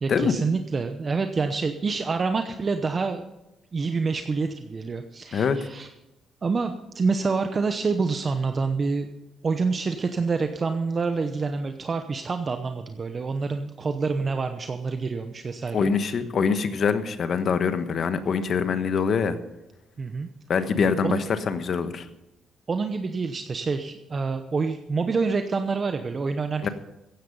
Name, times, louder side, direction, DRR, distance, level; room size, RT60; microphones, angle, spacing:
voice 1, 0.0-3.2 3.7-5.9 6.4-9.1 9.4-15.9 20.0-20.3 20.9-21.2 22.7-26.7, right 4 dB, 40° right, 7 dB, 0.9 m, -27 dB
voice 2, 15.7-19.4 20.5-22.0 26.6-26.7, left 6 dB, 55° left, 10 dB, 1.3 m, -24 dB
15.0 x 10.5 x 5.5 m, 0.92 s
cardioid pair, 90°, 0 cm